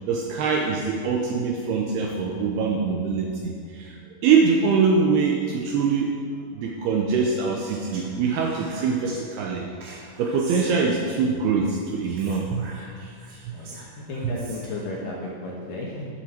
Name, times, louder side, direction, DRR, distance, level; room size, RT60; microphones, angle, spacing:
voice 1, 0.1-6.1 6.5-9.7 10.2-12.7 13.4-13.5, right 5 dB, 75° right, 0 dB, 2.4 m, -23 dB
Speech, 7.6-9.2 9.8-11.2 12.0-14.9, right 2 dB, 55° right, 3.4 m, -44 dB
voice 2, 13.5-16.1, left 2 dB, 60° left, -3 dB, 2.5 m, -34 dB
12.5 x 12.0 x 4.4 m, 2.2 s
omnidirectional pair, 5.4 m